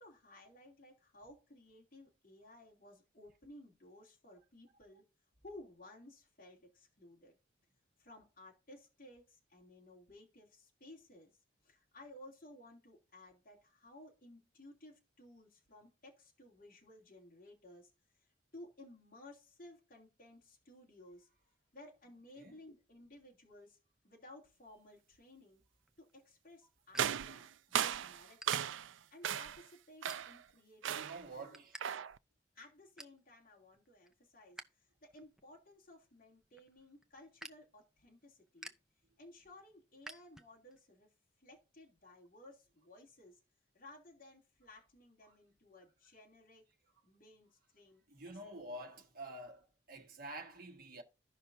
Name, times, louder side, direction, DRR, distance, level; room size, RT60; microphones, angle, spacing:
voice 1, 0.0-5.0 5.4-7.4 8.0-11.4 11.6-17.9 18.5-21.3 21.7-23.8 24.0-25.6 26.0-28.7 29.1-31.6 32.5-38.7 39.2-41.1 41.4-43.4 43.7-46.6 47.0-48.0, left 1 dB, 45° left, 2.9 m, -57 dB
sound 1, 25.8-27.9 28.2-28.6 29.2-29.4 29.9-30.6 31.0-31.8 32.1-32.2 32.6-33.2 33.7-34.7 35.0-40.8, right 1 dB, 5° right, 0.5 m, -54 dB
sound 2, 27.0-28.9 29.2-29.7 30.0-30.4 30.8-31.3 31.8-32.2, right 9 dB, 75° right, 0.4 m, -36 dB
voice 2, 30.9-31.8 45.3-45.4 48.1-51.0, right 1 dB, 45° right, 1.5 m, -48 dB
15.0 x 5.7 x 2.7 m
head